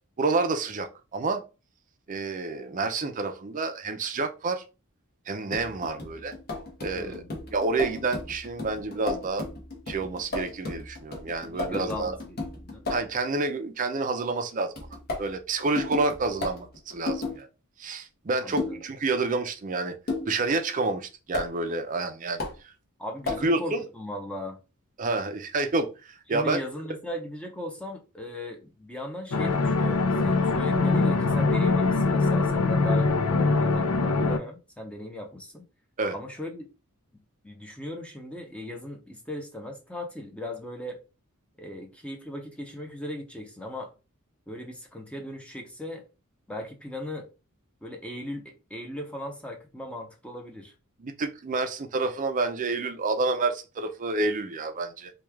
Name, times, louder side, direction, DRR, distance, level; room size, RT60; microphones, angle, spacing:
voice 1, 0.2-1.4 2.1-4.6 5.3-6.3 6.8-7.2 7.5-9.5 9.9-12.1 12.9-14.7 15.2-17.5 17.8-19.9 20.3-22.7 23.4-23.8 25.0-26.6 36.0-36.1 51.0-55.1, right 3 dB, 35° right, 0.5 m, -29 dB
sound 1, 5.5-13.2 14.8-17.4 18.6-18.9 20.1-20.4 21.3-21.5 22.4-22.6 23.3-23.5, left 3 dB, 45° left, 1.0 m, -34 dB
voice 2, 6.9-7.4 11.5-12.9 18.4-18.8 23.0-24.6 26.3-35.6 36.1-36.7 37.4-41.0 41.6-43.9 44.5-46.0 46.5-47.3 47.8-50.7, equal, 5° left, 0.6 m, -38 dB
sound 2, 29.3-34.4, left 3 dB, 90° left, 0.5 m, -23 dB
3.1 x 2.3 x 3.4 m
head